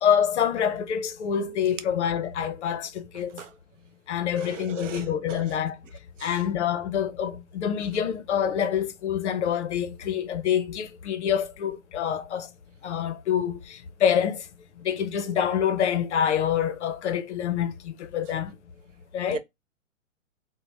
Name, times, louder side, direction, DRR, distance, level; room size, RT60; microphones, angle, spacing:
voice 1, 0.0-3.4 4.1-5.8 6.2-12.5 12.8-14.4 14.8-18.5 19.1-19.4, left 8 dB, 55° left, 0.6 m, -26 dB
voice 2, 4.4-5.1 6.2-6.3 19.3-19.4, right 8 dB, 65° right, 0.5 m, -36 dB
2.6 x 2.0 x 3.2 m
hypercardioid pair, 150°, 41 cm